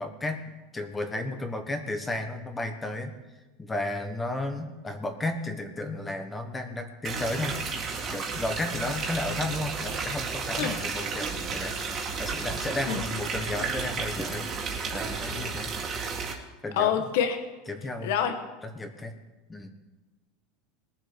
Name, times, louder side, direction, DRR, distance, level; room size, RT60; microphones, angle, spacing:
voice 1, 0.0-3.1 3.6-11.7 12.2-15.7 16.6-17.0 17.7-18.1 18.7-19.1 19.5-19.7, left 2 dB, 10° left, 6 dB, 1.2 m, -33 dB
sound 1, 7.0-16.3, right 5 dB, 30° right, 2.0 m, -32 dB
voice 2, 16.7-17.4 18.0-18.3, left 9 dB, 70° left, 8 dB, 1.3 m, -26 dB
20.5 x 7.3 x 5.2 m, 1.2 s
supercardioid pair, 155°, 0 cm